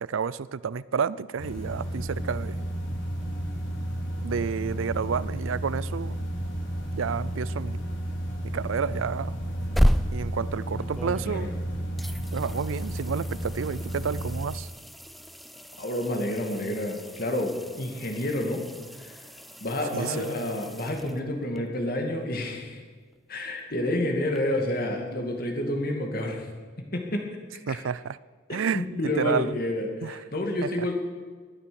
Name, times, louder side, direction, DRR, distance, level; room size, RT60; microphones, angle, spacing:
voice 1, 0.0-2.6 4.2-6.2 6.9-7.8 8.5-9.3 10.1-11.5 12.3-14.7 19.9-20.3 27.7-28.2 28.5-29.6 30.0-30.2 30.6-30.9, right 6 dB, 75° right, 19 dB, 0.4 m, -30 dB
sound 1, 1.4-14.4, right 1 dB, 65° left, 3.3 m, -32 dB
sound 2, 9.4-11.6 12.0-21.6 24.4-24.5, equal, ahead, 0.3 m, -33 dB
voice 2, 15.8-18.6 19.0-19.2 19.6-22.8 23.3-26.5 26.8-27.2 28.7-30.9, left 1 dB, 45° left, 2 dB, 2.4 m, -29 dB
19.5 x 9.8 x 7.0 m, 1.5 s
head